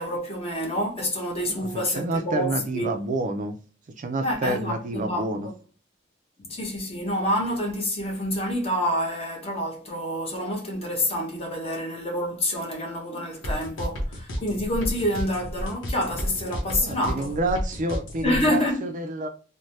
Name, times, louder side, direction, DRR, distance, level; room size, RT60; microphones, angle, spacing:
voice 1, 0.0-3.0 4.2-5.5 6.4-17.3 18.2-18.8, equal, 30° left, 0.9 m, -28 dB
voice 2, 1.5-3.6 4.0-5.5 16.8-19.3, right 2 dB, 40° right, 0.4 m, -29 dB
sound 1, 13.4-18.5, equal, 85° left, 0.8 m, -31 dB
3.2 x 2.1 x 2.7 m
head